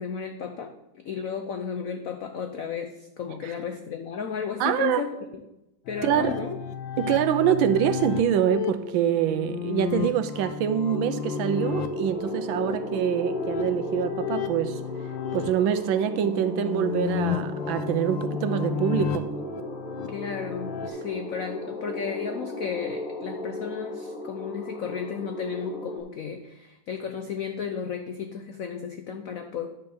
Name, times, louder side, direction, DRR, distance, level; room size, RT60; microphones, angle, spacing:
voice 1, 0.0-5.2 5.9-6.6 20.1-29.7, left 7 dB, 90° left, 0.7 m, -34 dB
voice 2, 4.6-5.0 6.0-6.3 7.0-14.8 15.3-19.3, right 9 dB, 75° right, 1.3 m, -25 dB
sound 1, 5.9-20.9, left 9 dB, 70° left, 1.3 m, -33 dB
sound 2, 10.8-26.0, left 1 dB, 40° left, 2.3 m, -35 dB
10.0 x 4.2 x 6.9 m
omnidirectional pair, 2.3 m